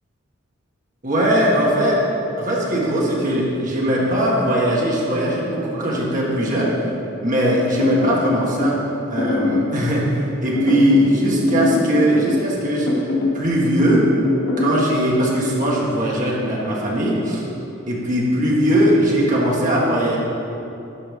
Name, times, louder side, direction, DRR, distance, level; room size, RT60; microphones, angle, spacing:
voice 1, 1.0-2.0 2.4-6.7 7.2-8.8 9.1-12.9 13.3-14.0 14.6-17.4 17.9-20.2, right 1 dB, 40° right, -4 dB, 1.7 m, -19 dB
sound 1, 7.8-8.8 9.2-9.7 10.6-11.1 11.5-12.5 12.9-13.4 14.2-14.8, left 3 dB, 80° left, 1.3 m, -22 dB
11.0 x 5.1 x 5.3 m, 2.9 s
head